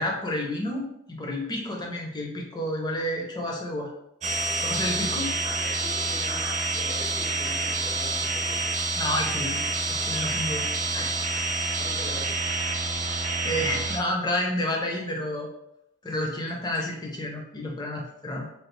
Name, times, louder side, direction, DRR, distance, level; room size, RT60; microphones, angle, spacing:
voice 1, 0.0-3.9 4.6-5.3 9.0-9.6 9.9-10.7 10.9-11.1 11.5-11.8 12.9-15.5 16.0-18.5, left 1 dB, 20° left, 0 dB, 0.5 m, -30 dB
sound 1, 4.2-14.0, right 3 dB, 35° right, 0.4 m, -28 dB
voice 2, 4.8-8.7 11.8-12.5, left 1 dB, 70° left, -9 dB, 1.4 m, -42 dB
3.1 x 2.4 x 3.0 m, 0.79 s
head